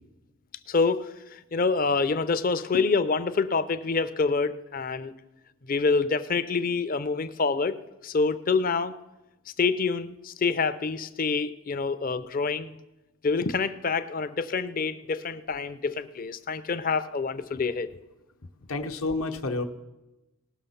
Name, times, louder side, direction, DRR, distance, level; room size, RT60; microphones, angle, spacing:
voice 1, 0.7-5.1 5.7-8.9 9.6-12.8 13.2-17.9, left 4 dB, 40° left, 12 dB, 0.5 m, -27 dB
voice 2, 18.7-19.6, left 3 dB, 75° left, 5 dB, 1.0 m, -29 dB
19.0 x 6.4 x 5.7 m, 1.0 s
head